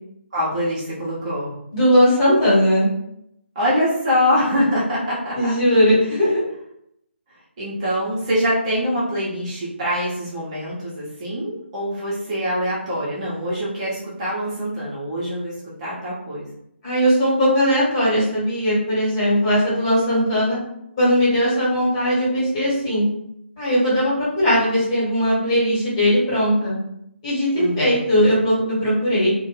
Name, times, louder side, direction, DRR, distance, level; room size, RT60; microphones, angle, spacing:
voice 1, 0.3-1.5 3.5-5.5 7.6-16.5 27.6-28.0, equal, 30° right, -8 dB, 0.9 m, -24 dB
voice 2, 1.7-2.9 5.3-6.4 16.8-20.6 21.0-23.1 23.6-26.7 27.2-27.5 27.8-29.3, equal, 30° left, -8 dB, 1.4 m, -18 dB
2.6 x 2.2 x 3.2 m, 0.76 s
figure-of-eight pair, 150°, 7 cm